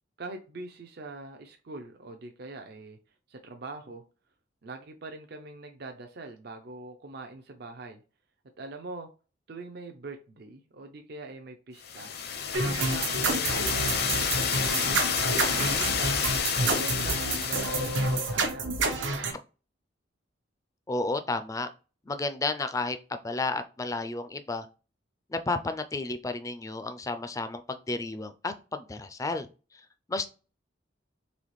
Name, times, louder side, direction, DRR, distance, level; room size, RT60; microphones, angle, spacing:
voice 1, 0.2-3.0 3.3-4.0 4.6-8.0 8.6-9.1 9.5-12.1 12.6-14.9 15.5-16.2 16.6-18.6, right 2 dB, 55° right, 5 dB, 0.5 m, -42 dB
sound 1, 11.8-18.4, left 7 dB, 55° left, 0.6 m, -29 dB
sound 2, 12.5-19.3, right 3 dB, 85° right, 0.8 m, -29 dB
voice 2, 20.9-21.7 22.1-24.7 25.3-29.5 30.1-30.3, left 3 dB, 20° left, 9 dB, 0.4 m, -32 dB
4.1 x 3.2 x 3.1 m, 0.34 s
head